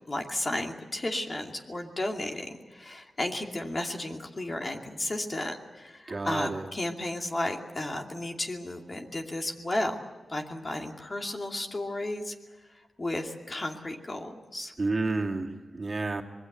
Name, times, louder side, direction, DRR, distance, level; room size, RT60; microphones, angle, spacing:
voice 1, 0.1-10.0 10.3-12.4 13.0-14.7, left 1 dB, 35° left, 2 dB, 2.6 m, -33 dB
voice 2, 6.1-6.7 14.8-16.2, right 3 dB, 40° right, 1 dB, 2.6 m, -30 dB
25.5 x 21.5 x 8.0 m, 1.2 s
wide cardioid pair, 85°, 0 cm